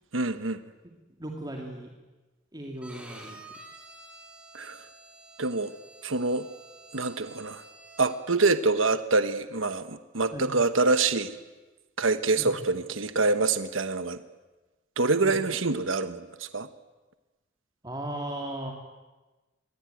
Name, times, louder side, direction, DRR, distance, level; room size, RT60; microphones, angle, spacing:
voice 1, 0.1-0.6 4.5-4.8 5.4-5.7 6.0-6.4 6.9-7.6 8.0-11.3 12.0-14.2 15.0-16.7, right 3 dB, 90° right, 10 dB, 1.3 m, -26 dB
voice 2, 1.2-1.9 2.5-3.4 10.3-10.5 12.4-12.6 15.2-15.4 17.8-18.7, right 1 dB, 20° right, 1 dB, 2.7 m, -36 dB
Bowed string instrument, 2.8-8.4, right 2 dB, 5° right, 5.6 m, -49 dB
27.5 x 22.5 x 9.3 m, 1.2 s
head